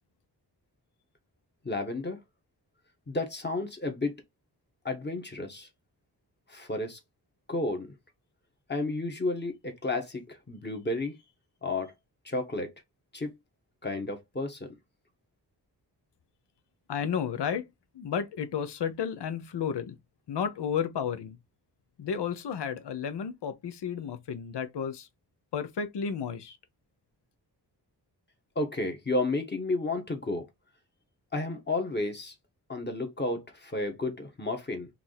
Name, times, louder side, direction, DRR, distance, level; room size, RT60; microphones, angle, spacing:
voice 1, 1.6-2.2 3.1-4.2 4.8-5.7 6.5-7.0 7.5-7.9 8.7-11.1 11.6-11.9 12.2-12.7 13.1-13.3 13.8-14.7 28.5-30.4 31.3-32.3 32.7-34.9, left 2 dB, 25° left, 1.3 m, -32 dB
voice 2, 16.9-17.7 17.9-19.9 20.3-21.4 22.0-25.1 25.5-26.6, left 7 dB, 85° left, 1.0 m, -32 dB
4.7 x 2.8 x 4.0 m
wide cardioid pair, 140°, 40 cm